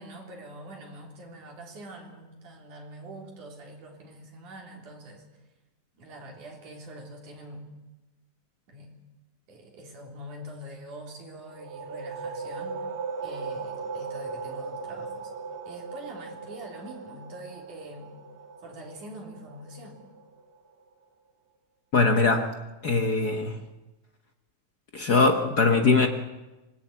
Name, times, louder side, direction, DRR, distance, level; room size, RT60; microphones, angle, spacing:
voice 1, 0.0-5.3 6.0-7.6 8.7-8.9 9.5-12.8 13.2-15.3 15.7-18.2 18.6-20.0, right 1 dB, 70° right, 0 dB, 5.3 m, -44 dB
sound 1, 11.4-20.8, right 4 dB, 50° right, 2.4 m, -38 dB
voice 2, 21.9-22.5 22.8-23.6 24.9-26.1, left 3 dB, 60° left, 5 dB, 1.0 m, -21 dB
25.5 x 20.5 x 8.3 m, 1.1 s
omnidirectional pair, 3.6 m